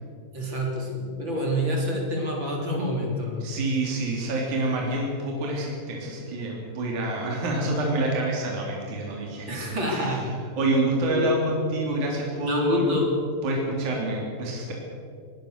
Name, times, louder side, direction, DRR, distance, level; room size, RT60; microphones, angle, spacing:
voice 1, 0.3-3.4 9.5-10.3 11.1-11.3 12.4-13.1, equal, 30° right, -1 dB, 4.1 m, -27 dB
voice 2, 3.4-10.2 10.6-13.0 13.4-14.7, right 1 dB, 55° right, -1 dB, 4.5 m, -27 dB
22.0 x 19.0 x 6.7 m, 2.4 s
omnidirectional pair, 4.1 m